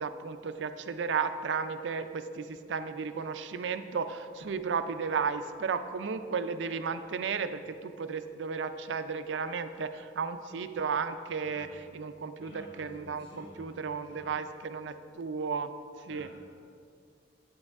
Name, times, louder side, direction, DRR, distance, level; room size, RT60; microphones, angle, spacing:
voice 1, 0.0-15.7 16.1-16.3, right 5 dB, 80° right, 10 dB, 0.4 m, -34 dB
voice 2, 11.4-11.9 12.4-13.7 14.1-14.3 16.0-16.3, equal, 90° left, -7 dB, 1.3 m, -51 dB
8.7 x 7.7 x 3.5 m, 2.4 s
head